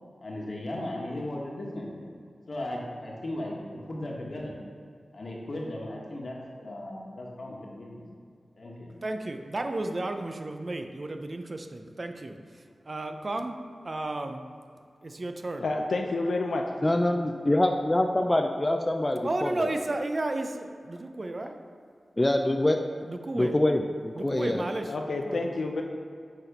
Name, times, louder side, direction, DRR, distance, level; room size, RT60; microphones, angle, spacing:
voice 1, 0.2-2.1 2.5-4.6 5.1-8.0 8.6-8.9, left 1 dB, 65° left, -2 dB, 1.4 m, -36 dB
voice 2, 9.0-14.4 15.0-15.6 19.2-21.6 23.1-23.6 24.1-24.9 25.2-25.4, right 2 dB, 50° right, 6 dB, 0.6 m, -33 dB
voice 3, 15.6-16.6 24.9-25.8, left 2 dB, 80° left, 2 dB, 0.6 m, -29 dB
voice 4, 16.8-19.7 22.2-22.8 23.3-24.6, left 1 dB, 25° left, 4 dB, 0.4 m, -25 dB
6.8 x 4.2 x 5.1 m, 2.3 s
cardioid pair, 45°, 0 cm